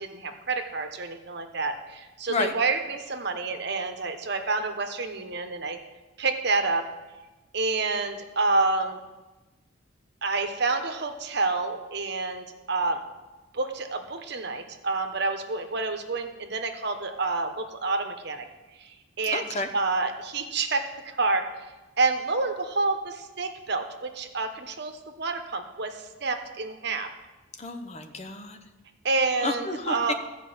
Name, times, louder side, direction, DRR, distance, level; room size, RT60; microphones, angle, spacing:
voice 1, 0.0-5.8 6.2-6.8 7.5-9.0 10.2-13.0 13.5-18.5 18.8-18.9 19.2-21.4 22.0-27.1 29.0-30.1, right 3 dB, 55° right, 6 dB, 1.1 m, -28 dB
voice 2, 19.3-19.7 27.6-28.6 29.4-30.1, left 3 dB, 30° left, 6 dB, 0.9 m, -30 dB
14.5 x 5.1 x 7.9 m, 1.1 s
head